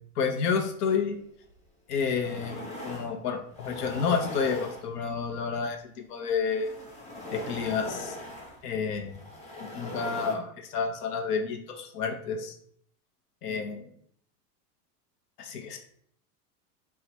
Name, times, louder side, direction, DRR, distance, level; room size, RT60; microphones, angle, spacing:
voice 1, 0.2-1.2 1.9-5.8 6.1-6.7 7.3-8.2 8.6-9.2 9.7-12.5 13.4-13.9 15.4-15.8, left 5 dB, 80° left, 3 dB, 0.9 m, -30 dB
sound 1, 1.5-1.6 2.0-3.1 3.5-5.2 6.3-10.3, left 2 dB, 15° left, 0.9 m, -40 dB
3.7 x 2.3 x 4.3 m, 0.63 s
hypercardioid pair, 110°, 46 cm